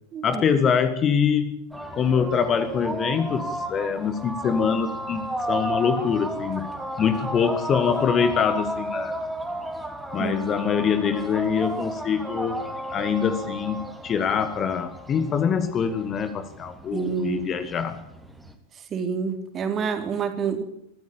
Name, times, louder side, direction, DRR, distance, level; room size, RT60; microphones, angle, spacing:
voice 1, 0.2-1.7 1.9-6.7 7.0-9.2 10.1-12.6 12.9-18.0, left 7 dB, 25° left, 11 dB, 2.1 m, -24 dB
sound 1, 1.7-18.5, right 1 dB, 5° right, 3.4 m, -33 dB
voice 2, 16.9-17.4 18.9-20.6, right 6 dB, 25° right, 7 dB, 3.8 m, -27 dB
23.5 x 14.5 x 8.8 m, 0.71 s
figure-of-eight pair, 90°, 0 cm